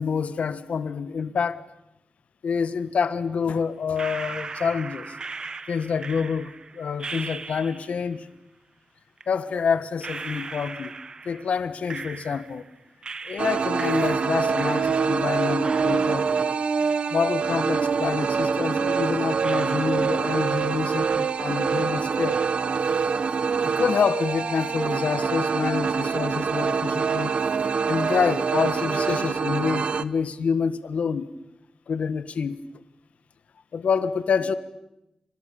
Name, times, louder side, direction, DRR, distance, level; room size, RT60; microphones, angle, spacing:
voice 1, 0.0-1.6 2.4-5.1 5.7-8.3 9.3-11.0 11.2-12.6 13.3-16.3 17.1-22.4 23.6-27.3 27.8-31.3 31.9-32.6 33.7-34.5, left 6 dB, 90° left, 13 dB, 1.5 m, -27 dB
sound 1, 4.0-8.1 9.2-9.3 10.0-12.7 13.0-15.3 15.6-17.7 18.0-18.1 18.8-18.9 19.4-20.7 21.0-21.6, right 4 dB, 40° right, 1.4 m, -39 dB
sound 2, 13.4-30.0, right 5 dB, 60° right, 1.0 m, -25 dB
29.5 x 26.5 x 7.1 m, 0.90 s
wide cardioid pair, 175°, 2 cm